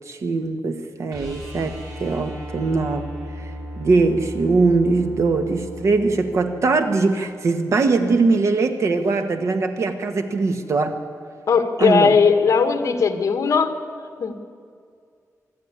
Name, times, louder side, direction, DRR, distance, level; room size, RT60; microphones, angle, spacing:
voice 1, 0.1-3.1 3.8-11.0 11.8-12.2, right 3 dB, 55° right, 7 dB, 1.5 m, -21 dB
sound 1, 1.1-7.1 9.6-9.7, equal, 85° right, 7.1 m, -36 dB
voice 2, 11.5-13.8 14.2-14.4, left 5 dB, 60° left, 7 dB, 1.6 m, -18 dB
25.5 x 12.0 x 9.8 m, 2.2 s
wide cardioid pair, 165°, 6 cm